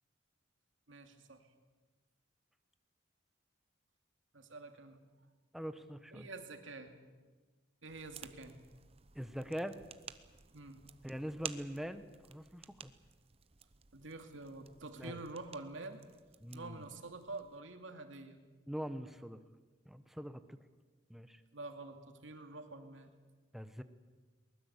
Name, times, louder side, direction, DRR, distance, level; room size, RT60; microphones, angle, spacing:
voice 1, 0.9-1.4 4.3-5.0 6.1-6.9 7.8-8.5 10.5-10.8 13.9-16.0 16.5-18.4 21.5-23.1, right 3 dB, 80° right, 6 dB, 2.6 m, -47 dB
voice 2, 5.5-6.3 9.1-9.7 11.0-12.9 15.0-15.2 16.4-16.9 18.7-19.4 19.8-20.6 21.1-21.4 23.5-23.8, equal, ahead, 10 dB, 1.0 m, -43 dB
sound 1, 7.9-17.6, right 7 dB, 30° right, 0.9 m, -53 dB
22.5 x 20.5 x 8.2 m, 1.3 s
head